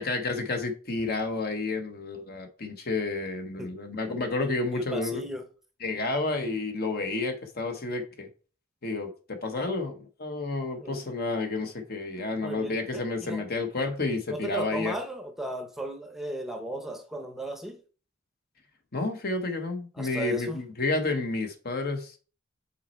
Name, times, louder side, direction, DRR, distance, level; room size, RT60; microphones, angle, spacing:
voice 1, 0.0-5.2 5.8-8.3 8.8-14.9 18.9-22.2, left 3 dB, 50° left, 1.1 m, -30 dB
voice 2, 4.7-5.4 10.8-11.1 12.4-13.4 14.3-17.8 20.0-20.6, right 1 dB, ahead, 0.8 m, -36 dB
5.7 x 4.3 x 4.3 m
head